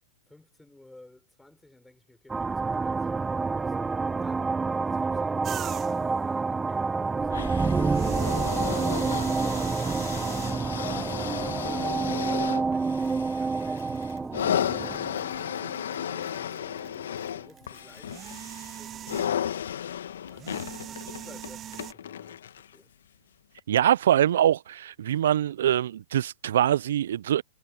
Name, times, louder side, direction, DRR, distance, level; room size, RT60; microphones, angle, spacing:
voice 1, 0.3-3.7 4.1-8.2 14.8-20.5 20.9-22.9, left 2 dB, 5° left, 4.9 m, -53 dB
sound 1, 2.3-16.4, right 4 dB, 10° right, 1.0 m, -28 dB
sound 2, 5.4-6.2 7.8-10.8 11.7-11.8 13.0-13.1 13.6-16.0 16.2-19.6 20.3-21.9, right 11 dB, 25° right, 0.6 m, -41 dB
sound 3, 7.3-22.8 23.6-23.7, left 9 dB, 75° left, 1.6 m, -34 dB
voice 2, 23.7-27.4, right 11 dB, 70° right, 0.3 m, -23 dB
hypercardioid pair, 120°, 0 cm